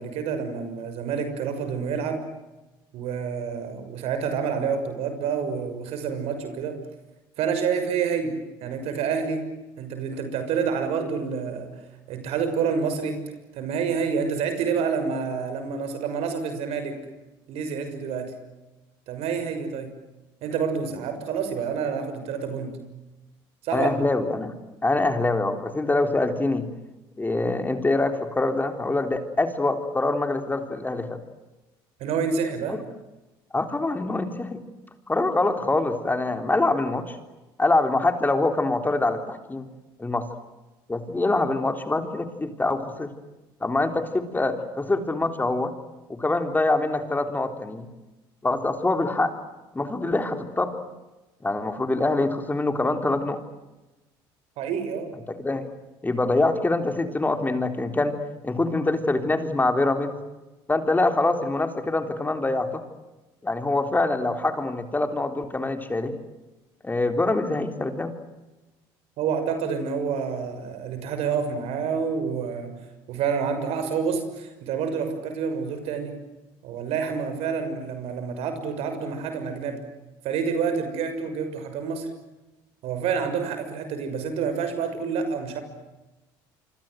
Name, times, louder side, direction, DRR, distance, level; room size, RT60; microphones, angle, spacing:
voice 1, 0.0-2.2 2.9-6.8 7.4-8.4 8.6-9.5 9.8-11.7 12.1-13.2 13.5-17.0 17.5-18.3 19.1-19.9 20.4-22.8 23.6-23.9 32.0-32.8 54.6-55.1 69.2-72.7 73.1-76.1 76.6-79.8 80.2-82.1 82.8-85.6, right 6 dB, 70° right, 8 dB, 6.4 m, -28 dB
voice 2, 23.7-24.5 24.8-26.7 27.2-31.2 32.7-32.8 33.5-34.6 35.1-37.2 37.6-39.7 40.0-40.3 40.9-43.1 43.6-45.7 46.1-47.9 48.4-49.3 49.7-50.7 51.4-53.4 55.4-55.7 56.0-58.2 58.4-60.2 60.7-62.8 63.4-66.1 66.8-68.1, left 2 dB, 15° left, 7 dB, 3.7 m, -24 dB
27.5 x 25.0 x 7.9 m, 1.1 s
supercardioid pair, 75°, 11 cm